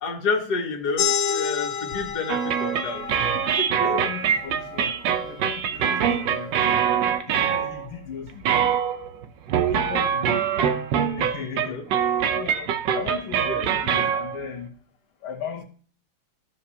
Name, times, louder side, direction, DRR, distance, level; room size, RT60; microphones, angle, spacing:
voice 1, 0.0-3.0 3.3-3.9 11.6-11.8 13.4-13.8, left 4 dB, 55° left, 2.0 m, -29 dB
sound 1, 1.0-6.1, left 8 dB, 70° left, 1.3 m, -31 dB
sound 2, 2.3-8.0 8.3-14.5, right 8 dB, 65° right, 1.4 m, -24 dB
voice 2, 3.8-6.7 7.3-8.7 9.7-10.5 11.2-11.8 12.3-14.7 15.2-15.6, left 7 dB, 85° left, 2.0 m, -36 dB
14.5 x 6.5 x 2.8 m
omnidirectional pair, 2.3 m